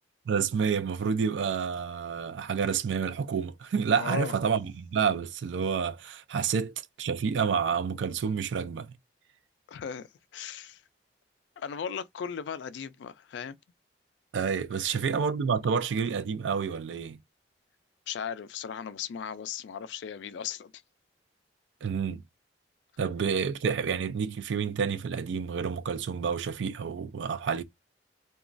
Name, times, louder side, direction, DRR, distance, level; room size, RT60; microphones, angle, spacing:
voice 1, 0.3-8.9 14.3-17.2 21.8-22.2 23.0-27.6, right 6 dB, 80° right, 0.4 m, -29 dB
voice 2, 3.9-4.3 9.7-10.1 10.3-10.8 11.6-13.6 14.8-15.0 18.1-20.7, left 7 dB, 75° left, 0.3 m, -37 dB
2.9 x 2.3 x 2.5 m
head